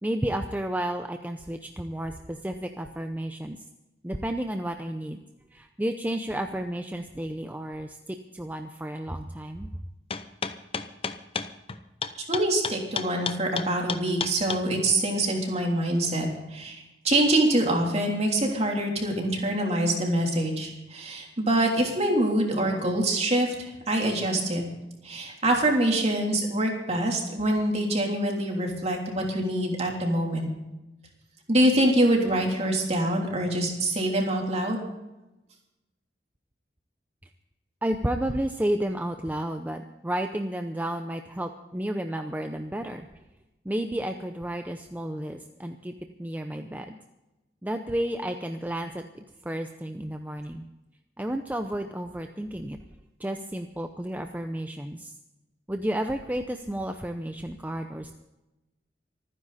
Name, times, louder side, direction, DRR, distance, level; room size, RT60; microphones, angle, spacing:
voice 1, 0.0-3.6 4.0-5.2 5.5-9.7 37.8-43.1 43.6-45.9 46.2-47.0 47.6-49.0 49.4-50.7 51.2-52.8 53.2-55.1 55.7-58.2, right 1 dB, 10° right, 5 dB, 0.6 m, -32 dB
sound 1, 10.1-14.6, left 6 dB, 30° left, 0.7 m, -31 dB
voice 2, 12.3-16.8 17.0-24.6 25.0-30.5 31.5-34.9, right 1 dB, 40° right, 0 dB, 3.2 m, -25 dB
25.5 x 10.0 x 4.1 m, 0.99 s
head